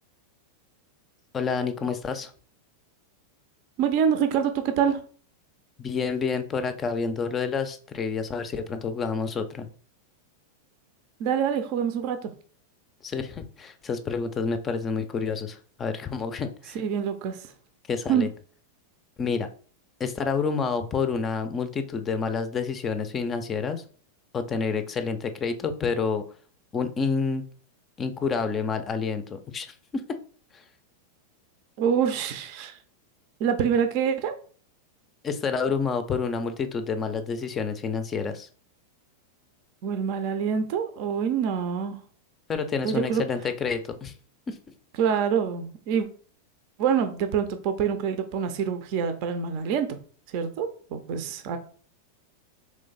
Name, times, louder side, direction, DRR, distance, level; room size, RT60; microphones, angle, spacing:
voice 1, 1.3-2.3 5.8-9.7 13.0-16.8 17.9-18.3 19.2-19.5 20.0-23.8 24.3-26.2 26.7-27.4 28.0-29.7 29.9-30.2 35.2-38.5 42.5-44.1 44.5-44.6, left 5 dB, 25° left, 9 dB, 0.5 m, -28 dB
voice 2, 3.8-5.0 11.2-12.3 16.7-17.4 18.1-18.3 31.8-32.8 33.4-34.3 39.8-42.0 42.8-43.2 45.0-46.1 46.8-50.0 50.3-51.6, right 7 dB, 45° right, 9 dB, 0.5 m, -26 dB
3.8 x 3.2 x 3.9 m, 0.43 s
figure-of-eight pair, 90°, 0 cm